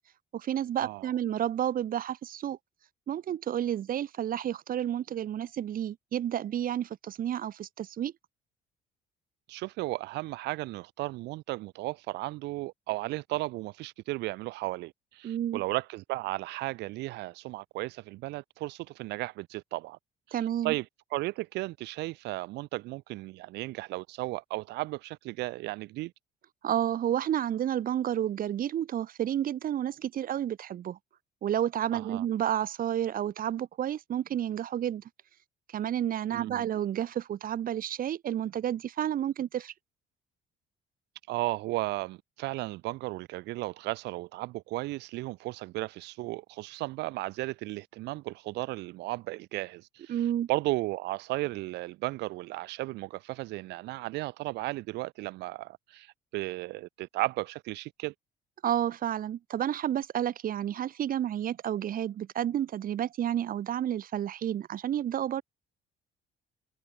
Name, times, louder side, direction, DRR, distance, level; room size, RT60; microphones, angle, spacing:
voice 1, 0.3-2.6 3.1-8.1 15.2-15.6 20.3-20.7 26.6-31.0 31.4-35.0 35.7-39.7 50.1-50.5 58.6-65.4, right 10 dB, 55° right, 5.0 m, -30 dB
voice 2, 9.5-20.0 20.6-20.8 21.1-26.1 31.9-32.2 36.3-36.7 41.3-50.2 50.5-58.1, right 19 dB, 85° right, 5.0 m, -35 dB
cardioid pair, 110°, 17 cm